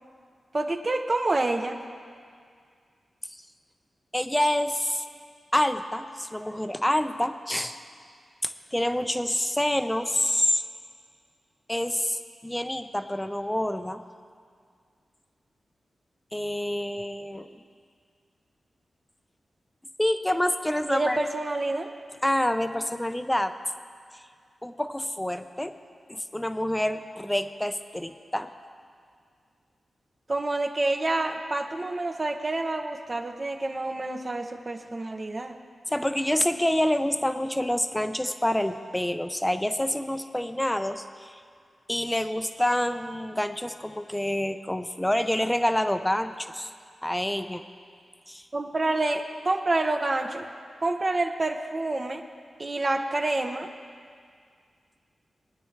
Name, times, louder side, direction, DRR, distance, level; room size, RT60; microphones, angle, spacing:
voice 1, 0.5-1.8 20.9-21.9 30.3-35.6 48.5-50.5 50.8-52.2 52.6-53.7, right 2 dB, 35° right, 4 dB, 0.9 m, -28 dB
voice 2, 4.1-5.0 5.5-7.8 8.4-10.6 11.7-14.0 16.3-17.6 20.0-21.2 22.2-23.5 24.6-25.8 26.1-28.5 35.9-41.4 41.9-46.7 47.0-47.6 48.3-48.4, left 1 dB, 10° left, 9 dB, 0.6 m, -27 dB
23.5 x 9.4 x 3.3 m, 2.1 s
wide cardioid pair, 95°, 0 cm